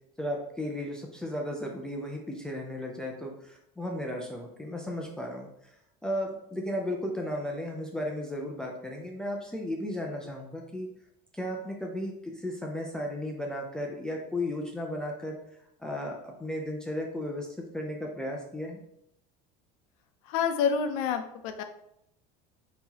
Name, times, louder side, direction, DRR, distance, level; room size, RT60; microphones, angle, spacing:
voice 1, 0.2-5.8 6.0-10.9 11.3-15.4 15.8-18.8, left 1 dB, 5° left, 0 dB, 0.4 m, -35 dB
voice 2, 20.3-21.6, left 6 dB, 75° left, 7 dB, 0.6 m, -28 dB
5.6 x 2.9 x 2.8 m, 0.76 s
cardioid pair, 160°, 18 cm